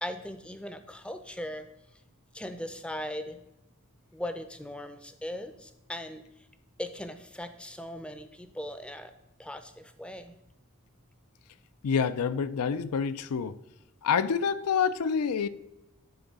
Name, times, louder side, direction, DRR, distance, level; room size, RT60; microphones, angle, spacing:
voice 1, 0.0-1.7 2.3-3.4 4.1-6.2 6.8-9.1 9.4-10.3, left 1 dB, 5° left, 0.5 m, -39 dB
voice 2, 11.8-13.6 14.0-15.5, left 6 dB, 85° left, 0.4 m, -27 dB
9.5 x 3.9 x 5.4 m
head